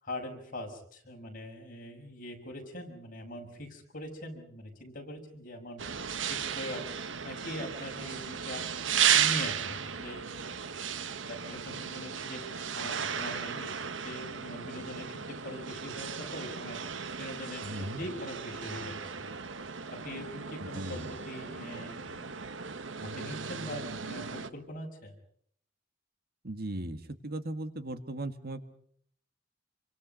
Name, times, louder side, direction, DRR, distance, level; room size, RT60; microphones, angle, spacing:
voice 1, 0.0-5.8 6.3-6.9 7.2-8.7 9.1-10.3 11.3-16.9 17.2-19.1 19.9-22.5 23.0-25.2, left 1 dB, 45° left, 2 dB, 6.1 m, -42 dB
sound 1, 5.8-24.5, right 8 dB, 80° right, 1.2 m, -35 dB
voice 2, 17.6-18.0 20.6-21.1 26.4-28.6, right 1 dB, 55° right, 9 dB, 1.9 m, -37 dB
28.0 x 24.5 x 5.5 m, 0.63 s
head